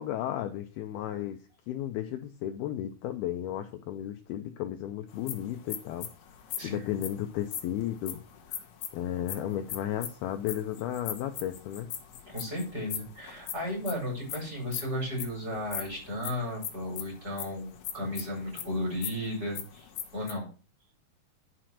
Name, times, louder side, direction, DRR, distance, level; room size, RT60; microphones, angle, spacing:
voice 1, 0.0-1.4 1.7-6.1 6.6-8.2 8.5-8.6 8.9-11.9, left 11 dB, 80° left, 6 dB, 2.3 m, -34 dB
sound 1, 5.1-20.3, left 10 dB, 60° left, 2.1 m, -40 dB
voice 2, 6.6-6.9 12.3-20.5, left 1 dB, 20° right, -1 dB, 5.4 m, -34 dB
10.0 x 6.0 x 6.3 m, 0.36 s
omnidirectional pair, 5.0 m